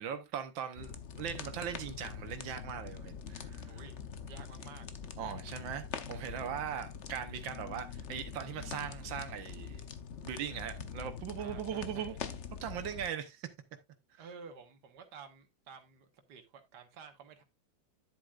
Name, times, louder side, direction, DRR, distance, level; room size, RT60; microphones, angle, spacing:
voice 1, 0.0-3.8 5.2-9.9 10.2-12.2 12.6-13.5, right 8 dB, 85° right, 1.8 m, -40 dB
sound 1, 0.8-13.1, left 7 dB, 50° left, 1.0 m, -44 dB
voice 2, 4.3-4.9 11.4-12.2 14.2-17.4, right 5 dB, 65° right, 1.9 m, -52 dB
10.5 x 8.1 x 2.5 m
omnidirectional pair, 2.0 m